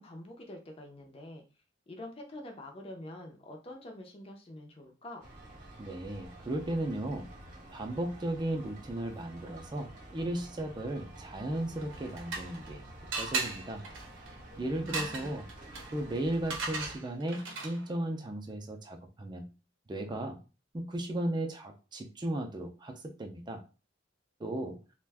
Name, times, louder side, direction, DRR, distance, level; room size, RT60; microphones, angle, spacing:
voice 1, 0.0-1.4 1.9-5.2 14.8-15.4, left 1 dB, 30° left, 2 dB, 0.5 m, -46 dB
sound 1, 5.2-17.0, right 1 dB, 45° right, 0.8 m, -50 dB
voice 2, 5.8-7.3 7.7-12.8 13.1-13.8 14.6-15.5 15.9-19.5 19.9-20.4 20.7-23.6 24.4-24.8, right 1 dB, 25° right, 4 dB, 0.4 m, -35 dB
sound 2, 11.8-12.7 13.1-17.9, right 3 dB, 90° right, 0.7 m, -38 dB
2.5 x 2.2 x 3.3 m, 0.32 s
head